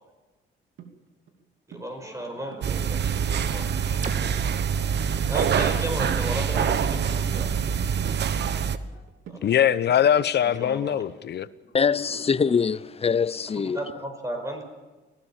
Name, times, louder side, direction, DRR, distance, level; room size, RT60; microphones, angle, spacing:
sound 1, 0.8-0.9 1.3-1.4 1.7-1.9 2.2-3.4 3.8-4.4 4.7-6.4 6.7-8.5 8.8-10.7, right 6 dB, 75° right, 3.0 m, -46 dB
voice 1, 1.7-4.6 4.9-7.5 8.9-9.0 9.3-9.5 10.3-11.0 13.7-14.6, right 1 dB, 15° right, 5.5 m, -35 dB
sound 2, 2.6-8.8, right 7 dB, 60° right, 1.2 m, -25 dB
sound 3, 4.0-7.9, right 4 dB, 40° right, 2.5 m, -43 dB
voice 2, 9.4-11.5, left 9 dB, 60° left, 1.0 m, -22 dB
voice 3, 11.7-13.8, left 6 dB, 30° left, 0.7 m, -23 dB
25.0 x 17.5 x 7.4 m
cardioid pair, 90°, 20 cm